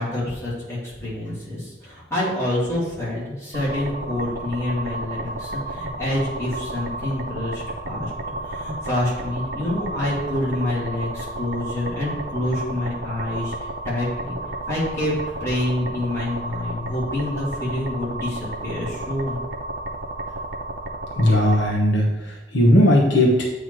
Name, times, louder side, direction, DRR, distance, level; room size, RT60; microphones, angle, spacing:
voice 1, 0.0-8.1 8.4-14.4 14.7-15.1 15.4-19.4, left 1 dB, 15° left, -8 dB, 2.5 m, -27 dB
sound 1, 3.5-21.7, right 2 dB, 50° right, 0.8 m, -32 dB
voice 2, 21.1-23.4, left 1 dB, 70° left, -1 dB, 1.0 m, -17 dB
7.9 x 3.2 x 5.9 m, 1.0 s
head